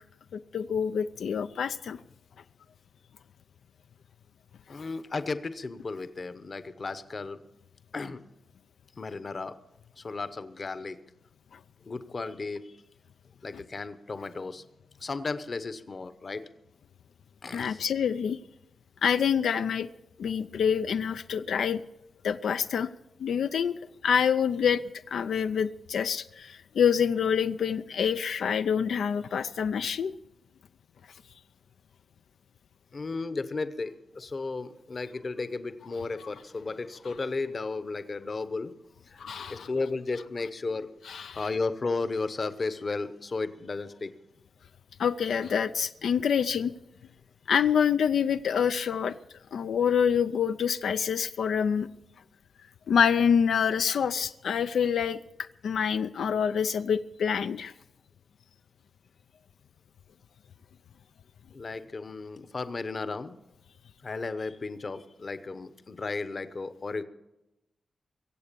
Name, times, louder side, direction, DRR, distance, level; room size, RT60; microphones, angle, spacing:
voice 1, 0.3-2.0 4.7-4.8 17.5-18.4 19.0-19.9 20.2-21.8 22.2-22.9 23.2-24.8 25.1-30.1 39.2-39.7 41.1-41.4 45.0-46.7 47.5-49.1 49.5-51.9 52.9-55.2 55.6-57.7, left 7 dB, 85° left, 10 dB, 0.5 m, -26 dB
voice 2, 4.7-7.4 7.9-8.2 9.0-9.6 10.0-11.0 11.8-12.7 13.4-14.6 15.0-16.4 17.4-17.8 32.9-38.7 39.1-40.9 41.3-44.1 61.5-63.3 64.0-67.0, left 3 dB, 35° left, 12 dB, 0.9 m, -34 dB
23.0 x 8.1 x 6.8 m, 0.92 s
wide cardioid pair, 150°, 0 cm